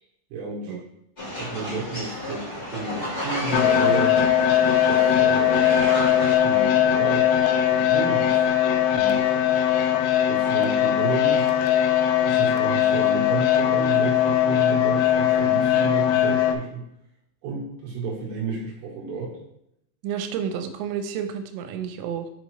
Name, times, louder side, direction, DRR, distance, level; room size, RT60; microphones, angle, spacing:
voice 1, 0.3-0.8 1.4-4.2 4.9-5.9 6.4-8.5 8.9-9.5 10.3-11.6 12.3-16.8 17.4-19.4, right 4 dB, 70° right, -2 dB, 3.0 m, -32 dB
sound 1, 1.2-6.3, equal, 40° left, 0.6 m, -32 dB
sound 2, 3.5-16.6, left 10 dB, 85° left, 3.0 m, -20 dB
voice 2, 20.0-22.3, right 8 dB, 90° right, 8 dB, 3.1 m, -30 dB
6.4 x 5.2 x 3.1 m, 0.79 s
omnidirectional pair, 5.4 m